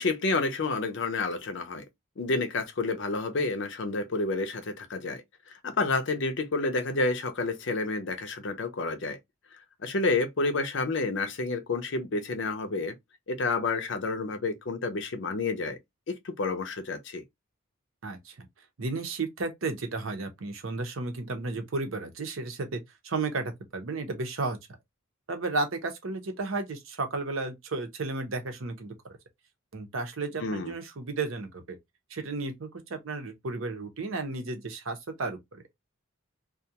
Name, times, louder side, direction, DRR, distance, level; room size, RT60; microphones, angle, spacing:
voice 1, 0.0-1.8 2.2-5.2 5.6-9.2 9.8-12.9 13.3-15.8 16.1-17.2 30.4-30.7, left 3 dB, 60° left, 0.5 m, -29 dB
voice 2, 18.0-18.5 18.8-24.6 25.3-28.9 29.7-31.8 32.1-35.6, right 3 dB, 75° right, 0.7 m, -33 dB
2.4 x 2.2 x 2.7 m
head